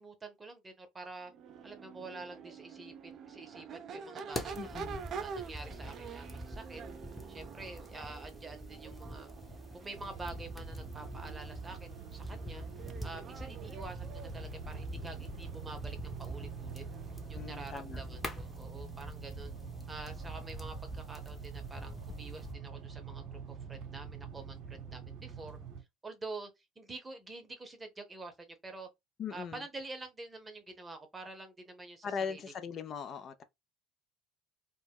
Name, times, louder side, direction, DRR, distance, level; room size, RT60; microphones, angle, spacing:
voice 1, 0.0-1.3 1.6-4.8 5.2-6.8 7.3-9.3 9.7-12.7 13.0-16.8 17.3-19.5 19.9-25.6 26.0-26.5 26.8-28.9 29.3-32.4, right 3 dB, 25° right, 0.8 m, -47 dB
Crowd / Race car auto racing / Accelerating revving vroom, 1.3-18.4, right 6 dB, 50° right, 0.4 m, -48 dB
sound 1, 4.3-22.5, equal, 10° left, 0.8 m, -45 dB
voice 2, 4.6-5.0 17.3-18.0 29.2-29.6 32.0-33.4, left 6 dB, 50° left, 0.5 m, -40 dB
sound 2, 9.9-25.8, right 6 dB, 70° right, 0.8 m, -46 dB
2.2 x 2.0 x 3.4 m
hypercardioid pair, 70°, 0 cm